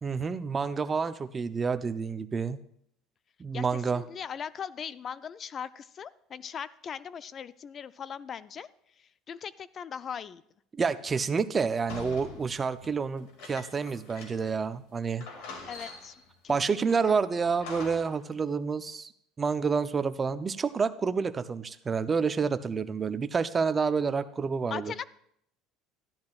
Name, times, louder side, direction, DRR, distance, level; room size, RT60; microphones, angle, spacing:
voice 1, 0.0-2.6 3.4-4.0 10.7-15.3 16.5-19.1 19.4-24.9, right 5 dB, 25° right, 11 dB, 0.5 m, -29 dB
voice 2, 3.5-8.7 9.3-10.4 15.7-16.2 16.4-17.2 24.7-25.1, left 7 dB, 35° left, 16 dB, 0.4 m, -39 dB
sound 1, 11.9-14.6 14.9-15.0 15.2-16.3 16.9-18.2, left 4 dB, 75° left, 2.2 m, -45 dB
13.5 x 10.5 x 2.4 m, 0.70 s
cardioid pair, 120°, 0 cm